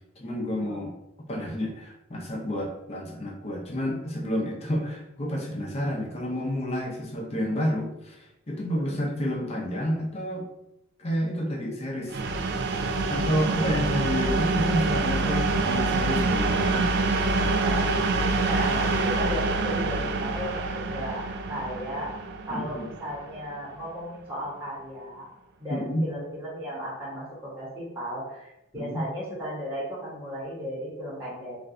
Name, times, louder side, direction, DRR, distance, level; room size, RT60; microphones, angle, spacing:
voice 1, 0.2-0.9 1.3-10.5 11.0-12.2 13.1-17.0 22.5-22.9 25.7-26.1 28.7-29.1, equal, 30° left, 0 dB, 0.5 m, -30 dB
sound 1, 12.1-23.7, right 3 dB, 55° right, 0.3 m, -26 dB
voice 2, 17.6-21.2 21.5-22.1 22.5-25.3 25.6-31.6, equal, 10° right, -7 dB, 0.8 m, -35 dB
2.5 x 2.2 x 3.8 m, 0.86 s
head